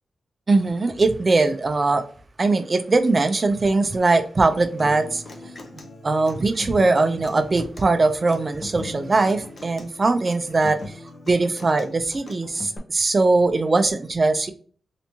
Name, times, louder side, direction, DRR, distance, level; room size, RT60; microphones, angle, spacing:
voice 1, 0.5-2.0 2.4-5.2 5.7-10.9 11.3-14.5, right 3 dB, 30° right, 0.4 m, -21 dB
Human voice / Acoustic guitar, 4.8-12.8, left 2 dB, 40° left, 0.6 m, -40 dB
3.3 x 2.8 x 2.8 m
wide cardioid pair, 180°, 0 cm